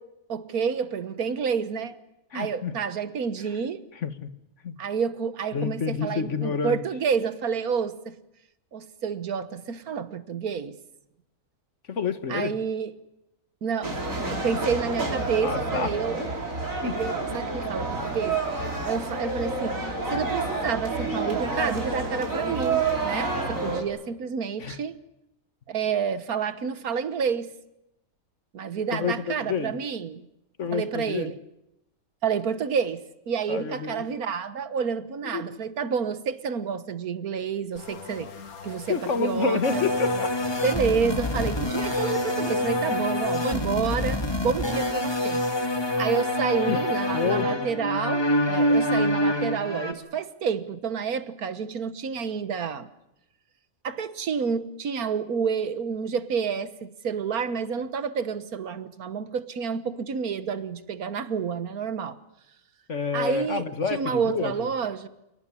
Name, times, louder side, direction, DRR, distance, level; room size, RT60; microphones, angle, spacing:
voice 1, 0.3-2.0 2.3-3.8 4.8-8.2 8.7-10.8 12.3-12.9 13.6-16.3 16.8-18.6 18.8-19.8 20.1-25.0 25.7-27.5 28.5-30.3 30.7-31.4 32.2-38.3 38.6-39.8 40.6-52.9 53.8-62.2 63.1-65.1, right 6 dB, 85° right, 1.7 m, -29 dB
voice 2, 2.3-2.7 4.0-4.3 4.6-4.7 5.5-6.8 11.9-12.5 14.5-14.6 15.4-15.9 16.2-16.3 16.8-17.0 24.6-24.8 28.9-29.7 30.6-31.3 33.5-34.0 35.2-35.4 38.9-40.3 46.7-46.8 47.1-47.7 62.9-64.7, left 5 dB, 55° left, 1.8 m, -28 dB
sound 1, 13.8-23.8, right 3 dB, 65° right, 4.7 m, -29 dB
sound 2, 37.7-43.3, left 6 dB, 80° left, 2.1 m, -42 dB
sound 3, 39.6-49.9, left 1 dB, 15° left, 2.0 m, -26 dB
28.5 x 18.5 x 9.8 m
omnidirectional pair, 1.5 m